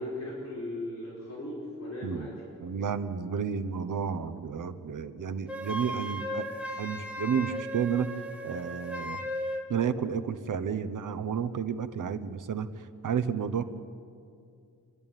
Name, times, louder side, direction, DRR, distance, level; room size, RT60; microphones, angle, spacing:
voice 1, 0.0-2.4, left 1 dB, 55° left, -6 dB, 4.8 m, -37 dB
voice 2, 2.6-6.5 6.8-8.1 8.4-9.2 9.7-13.6, right 7 dB, 70° right, 11 dB, 1.0 m, -31 dB
Wind instrument woodwind instrument, 5.5-9.7, equal, 5° right, 1.5 m, -36 dB
28.0 x 11.0 x 9.0 m, 2.4 s
wide cardioid pair, 175°, 33 cm